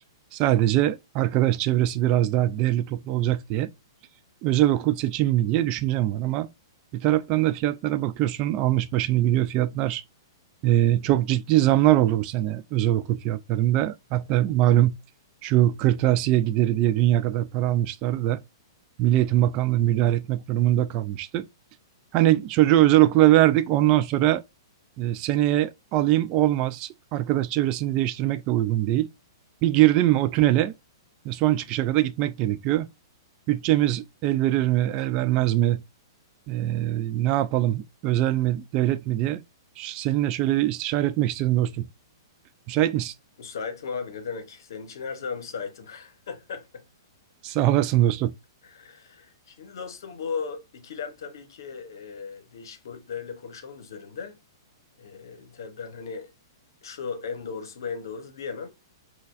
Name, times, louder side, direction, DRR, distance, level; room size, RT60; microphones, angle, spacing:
voice 1, 0.3-3.7 4.4-6.5 6.9-10.0 10.6-14.9 15.4-18.4 19.0-21.5 22.1-24.4 25.0-29.1 29.6-30.7 31.2-32.9 33.5-35.8 36.5-39.4 39.8-41.9 42.7-43.1 47.4-48.3, right 14 dB, 35° right, 0.3 m, -22 dB
voice 2, 43.4-46.8 47.5-47.6 48.6-54.4 55.0-56.3 56.8-58.7, left 5 dB, 70° left, 0.9 m, -36 dB
4.4 x 2.2 x 2.4 m
hypercardioid pair, 125°, 2 cm